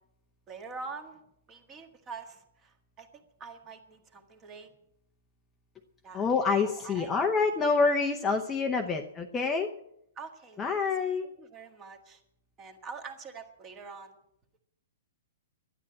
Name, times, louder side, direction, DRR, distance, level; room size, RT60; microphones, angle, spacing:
voice 1, 0.5-1.2 1.5-4.7 6.0-6.3 6.6-7.1 10.2-10.6 11.2-12.2 12.6-14.2, right 4 dB, 15° right, 6 dB, 1.6 m, -45 dB
voice 2, 6.1-9.7 10.6-11.3, left 4 dB, 10° left, 3 dB, 0.8 m, -27 dB
12.5 x 10.0 x 8.5 m, 0.74 s
hypercardioid pair, 170°, 0 cm